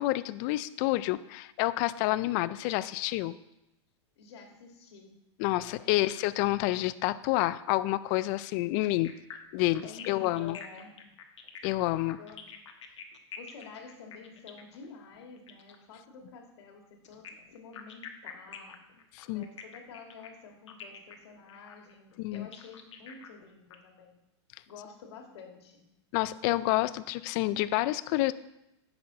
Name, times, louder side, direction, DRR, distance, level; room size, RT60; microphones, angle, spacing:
voice 1, 0.0-3.4 5.4-9.1 9.5-10.6 11.6-12.2 19.1-19.5 22.2-22.5 26.1-28.3, left 17 dB, 40° left, 15 dB, 0.3 m, -29 dB
voice 2, 4.2-5.1 5.7-6.1 9.8-10.9 12.2-12.5 13.4-18.8 19.3-24.2 24.7-25.8, left 5 dB, 65° left, 3 dB, 1.9 m, -49 dB
sound 1, 9.0-15.8 17.0-23.7, left 8 dB, 90° left, 1.2 m, -47 dB
10.5 x 6.1 x 3.9 m, 0.87 s
hypercardioid pair, 140°, 15 cm